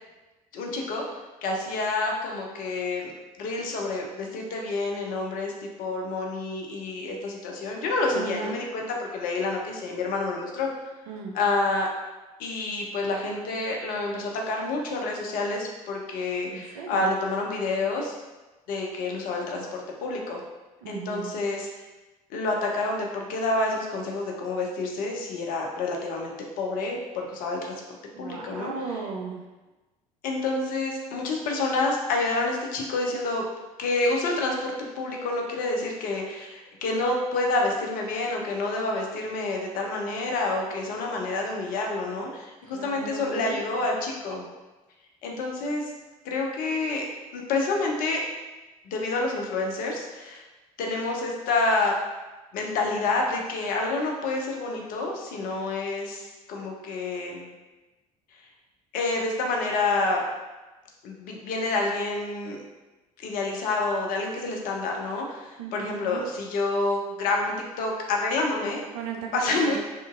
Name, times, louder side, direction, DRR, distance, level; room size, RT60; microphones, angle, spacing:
voice 1, 0.5-1.0 1.4-3.1 3.4-5.5 5.8-8.9 9.1-10.7 11.3-11.9 12.4-18.1 18.7-20.4 20.9-21.7 22.3-27.8 28.2-28.7 30.2-33.4 33.8-44.5 45.2-45.8 46.2-47.0 47.3-48.2 48.8-50.4 50.8-51.9 52.5-57.5 58.9-60.2 61.0-62.6 63.2-68.8 69.3-69.8, left 3 dB, 50° left, 0 dB, 0.5 m, -28 dB
voice 2, 8.1-8.6 11.1-11.4 16.5-17.1 20.8-21.4 28.1-29.4 42.7-43.6 65.6-66.3 68.9-69.8, right 5 dB, 55° right, 1 dB, 0.5 m, -36 dB
2.7 x 2.5 x 2.5 m, 1.1 s
figure-of-eight pair, 60°, 19 cm